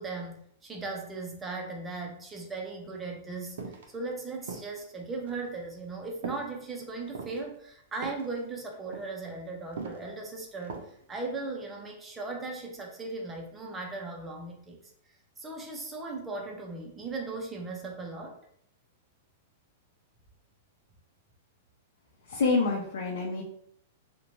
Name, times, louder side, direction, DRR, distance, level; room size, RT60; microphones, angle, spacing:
voice 1, 0.0-3.6 3.9-14.8 15.4-18.4, right 3 dB, 10° right, 0 dB, 0.4 m, -38 dB
sound 1, 3.6-3.9 4.4-4.8 5.3-5.5 6.2-6.5 7.0-7.4 8.0-8.4 8.7-9.1 9.7-10.1 10.6-11.0 11.3-11.4, right 4 dB, 70° right, 0.5 m, -40 dB
voice 2, 22.3-23.4, left 3 dB, 70° left, -3 dB, 0.6 m, -27 dB
2.6 x 2.1 x 2.9 m, 0.66 s
supercardioid pair, 165°, 0 cm